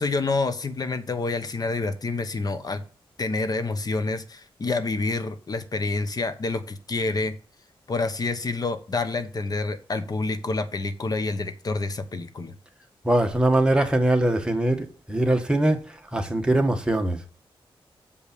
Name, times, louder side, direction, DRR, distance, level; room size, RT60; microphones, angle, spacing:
voice 1, 0.0-2.8 3.2-7.3 7.9-12.5, left 3 dB, 40° left, 1.1 m, -28 dB
voice 2, 13.0-17.2, right 1 dB, 10° right, 1.5 m, -22 dB
7.1 x 5.3 x 6.8 m
wide cardioid pair, 100°, 10 cm